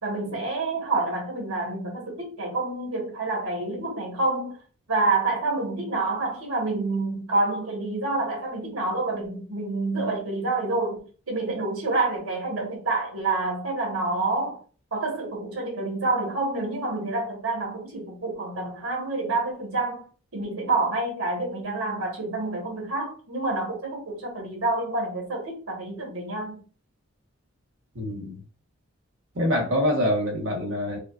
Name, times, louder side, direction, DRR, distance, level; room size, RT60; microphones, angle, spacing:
voice 1, 0.0-4.6 4.9-14.6 14.9-20.0 20.3-26.6, right 3 dB, 90° right, 1.6 m, -28 dB
voice 2, 27.9-28.4 29.3-31.0, equal, 70° right, 1.3 m, -25 dB
5.0 x 2.4 x 2.5 m
head